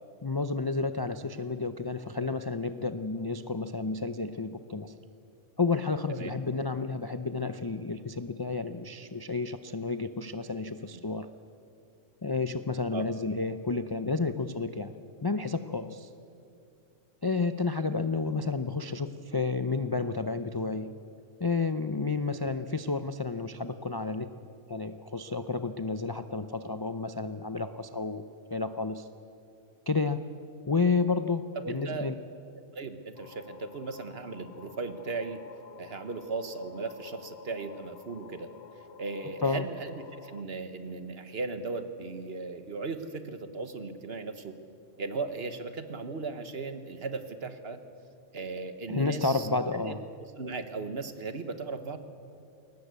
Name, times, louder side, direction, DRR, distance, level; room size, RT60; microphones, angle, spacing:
voice 1, 0.2-4.9 5.6-11.3 12.2-15.0 15.2-16.1 17.2-20.9 21.4-28.2 28.5-29.1 29.9-30.2 30.7-32.2 39.4-39.6 48.9-50.0, left 4 dB, 40° left, 10 dB, 0.3 m, -31 dB
voice 2, 31.6-32.1 32.7-35.4 35.8-38.5 39.0-44.5 45.0-47.8 48.3-49.5 49.7-49.9 50.4-52.0, right 4 dB, 50° right, 10 dB, 1.4 m, -37 dB
sound 1, 33.2-40.4, left 6 dB, 60° left, 1.0 m, -51 dB
21.5 x 19.0 x 8.2 m, 2.6 s
omnidirectional pair, 1.4 m